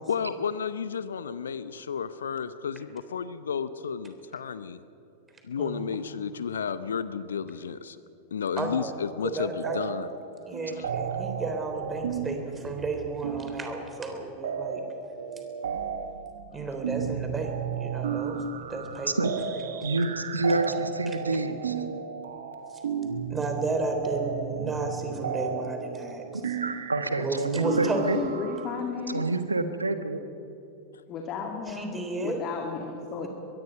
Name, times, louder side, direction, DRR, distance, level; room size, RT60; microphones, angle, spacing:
voice 1, 0.1-4.8 5.4-8.0 8.3-10.1 10.7-10.9, left 7 dB, 65° left, 15 dB, 0.8 m, -32 dB
voice 2, 5.6-6.1 8.6-8.9 9.2-9.8 10.5-14.8 16.5-18.4 18.7-19.3 19.7-19.8 21.1-21.2 22.7-22.8 23.3-26.5 27.2-28.2 31.7-32.4 33.2-33.3, right 2 dB, 15° right, 5 dB, 3.6 m, -33 dB
sound 1, 9.6-10.3 10.5-28.8, right 7 dB, 65° right, 1.6 m, -34 dB
voice 3, 19.8-21.7 26.6-28.2 29.1-30.2, right 2 dB, 80° right, 10 dB, 1.4 m, -27 dB
voice 4, 27.9-29.2 31.1-33.3, left 5 dB, 35° left, 2 dB, 2.3 m, -34 dB
23.0 x 22.0 x 5.4 m, 2.7 s
figure-of-eight pair, 90°, 0 cm